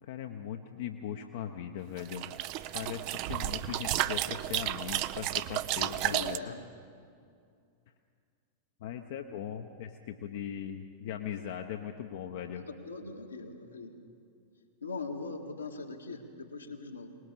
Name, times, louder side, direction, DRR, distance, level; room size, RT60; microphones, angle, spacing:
voice 1, 0.0-2.4 2.7-6.5 8.8-12.6, left 9 dB, 55° left, 4 dB, 1.0 m, -39 dB
sound 1, 2.0-6.4, right 14 dB, 45° right, 0.6 m, -32 dB
voice 2, 6.1-6.7 12.6-13.9 14.8-17.2, left 3 dB, 80° left, 1 dB, 2.0 m, -41 dB
23.5 x 20.0 x 6.8 m, 2.3 s
figure-of-eight pair, 90°, 0 cm